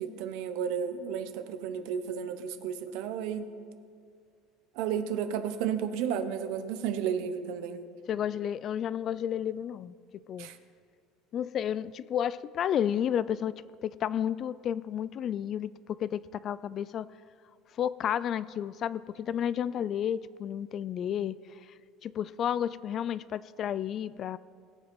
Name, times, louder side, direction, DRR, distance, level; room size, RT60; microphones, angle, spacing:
voice 1, 0.0-3.5 4.7-7.8 10.4-10.6, right 8 dB, 70° right, 10 dB, 0.9 m, -33 dB
voice 2, 8.1-9.9 10.3-10.5 11.3-13.5 13.8-15.7 16.0-17.1 17.8-21.4 22.0-24.4, left 9 dB, 35° left, 18 dB, 0.3 m, -31 dB
19.5 x 7.3 x 5.3 m, 2.3 s
cardioid pair, 150°, 0 cm